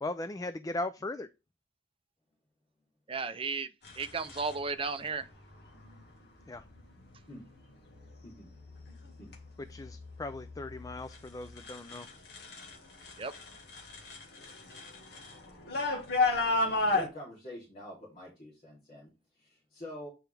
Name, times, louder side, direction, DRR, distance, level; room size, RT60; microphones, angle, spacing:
voice 1, 0.0-1.3 6.5-6.6 9.7-12.1, left 2 dB, 20° left, 0.3 m, -38 dB
voice 2, 3.1-3.7 4.0-5.3 13.2-13.3, right 4 dB, 30° right, 0.6 m, -34 dB
sound 1, 3.8-4.5 5.7-6.0 6.6-7.0 7.6-8.1 8.4-12.7 13.0-17.1, left 3 dB, 60° left, 1.8 m, -33 dB
voice 3, 16.9-20.1, left 1 dB, 40° left, 2.8 m, -46 dB
8.9 x 4.5 x 3.4 m
head